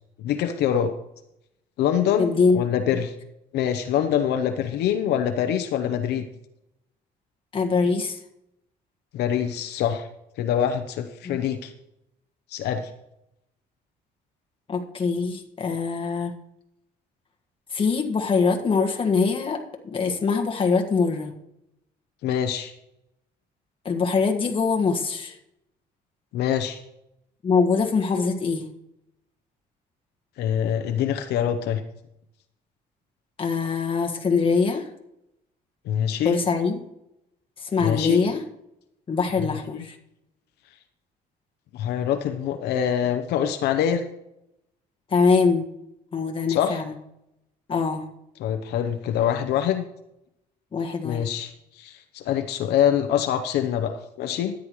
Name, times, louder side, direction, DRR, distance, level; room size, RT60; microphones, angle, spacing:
voice 1, 0.2-0.9 1.8-3.1 3.5-6.3 9.1-10.1 10.4-11.7 12.5-12.9 22.2-22.7 26.3-26.8 30.4-31.8 35.8-36.4 37.8-38.2 39.5-39.8 41.7-44.0 46.5-46.8 48.4-49.8 51.0-54.5, left 9 dB, 75° left, 8 dB, 0.8 m, -25 dB
voice 2, 2.2-2.6 7.5-8.2 11.2-11.4 14.7-16.3 17.7-21.3 23.8-25.3 27.4-28.7 33.4-34.9 36.2-36.8 37.6-38.4 39.1-39.9 45.1-45.6 46.1-46.9 47.7-48.0 50.7-51.2, left 4 dB, 30° left, 3 dB, 1.6 m, -23 dB
13.5 x 9.9 x 3.1 m, 0.83 s
cardioid pair, 110°, 17 cm